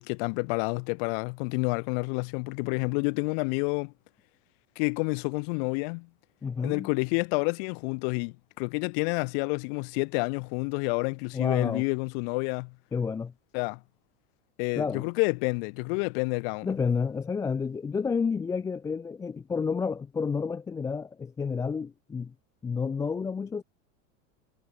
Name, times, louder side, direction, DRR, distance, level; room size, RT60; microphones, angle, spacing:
voice 1, 0.0-3.9 4.8-6.1 6.6-12.7 13.5-13.8 14.6-16.7, left 39 dB, 50° left, 1.1 m, -29 dB
voice 2, 6.4-6.9 11.3-11.9 12.9-13.3 14.8-15.1 16.6-22.3 22.6-23.6, left 5 dB, 10° left, 0.5 m, -30 dB
supercardioid pair, 160°, 37 cm